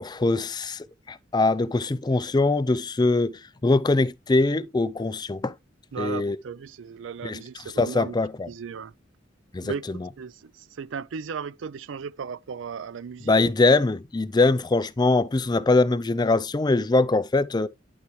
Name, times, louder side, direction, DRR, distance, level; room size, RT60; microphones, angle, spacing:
voice 1, 0.0-5.5 6.0-6.4 7.2-7.4 7.8-8.5 9.5-9.7 13.3-17.7, left 3 dB, 20° left, 0.4 m, -22 dB
voice 2, 5.9-8.2 8.5-8.9 9.6-9.8 10.2-13.4, right 6 dB, 90° right, 0.4 m, -36 dB
11.0 x 4.8 x 3.1 m
head